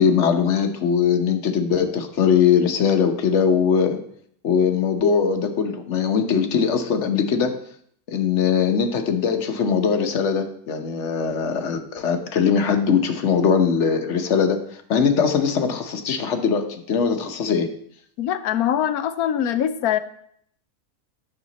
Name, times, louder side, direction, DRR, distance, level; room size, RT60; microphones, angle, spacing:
voice 1, 0.0-4.0 4.4-7.6 8.1-17.7, left 6 dB, 55° left, 6 dB, 1.1 m, -21 dB
voice 2, 18.2-20.0, left 10 dB, 75° left, 11 dB, 1.1 m, -23 dB
8.7 x 6.6 x 4.1 m, 0.65 s
omnidirectional pair, 1.7 m